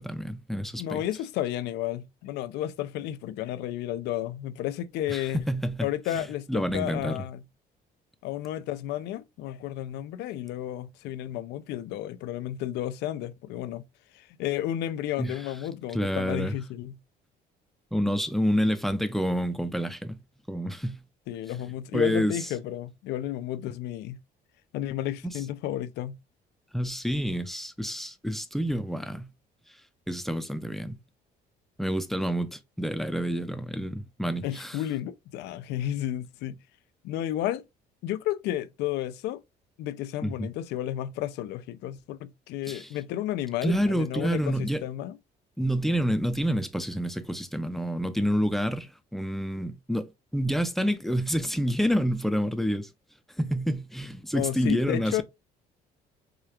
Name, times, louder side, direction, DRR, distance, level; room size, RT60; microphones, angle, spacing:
voice 1, 0.0-1.0 5.1-5.9 6.1-7.2 15.2-15.3 15.9-16.5 17.9-20.2 20.5-21.0 21.9-22.4 26.7-29.3 30.1-31.0 31.8-34.8 40.2-40.5 42.7-42.9 43.6-44.8 45.6-52.9 53.4-55.2, equal, ahead, 0.5 m, -28 dB
voice 2, 0.8-5.4 5.8-7.4 8.2-13.8 14.1-17.0 21.3-24.2 24.7-26.2 34.4-36.6 37.0-37.6 38.0-39.4 39.8-45.2 54.3-55.2, left 12 dB, 85° left, 0.5 m, -32 dB
4.9 x 2.3 x 2.8 m
cardioid pair, 110°, 17 cm